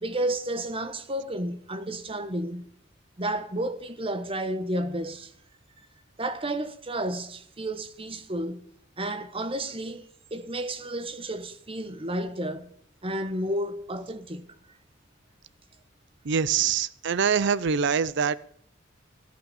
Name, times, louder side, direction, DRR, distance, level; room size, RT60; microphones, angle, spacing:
voice 1, 0.0-2.7 3.2-5.3 6.2-8.7 9.0-10.1 10.3-12.7 13.0-14.4, right 1 dB, 30° right, 1.2 m, -31 dB
voice 2, 16.2-18.4, right 6 dB, 60° right, 0.5 m, -24 dB
16.5 x 5.7 x 8.8 m
head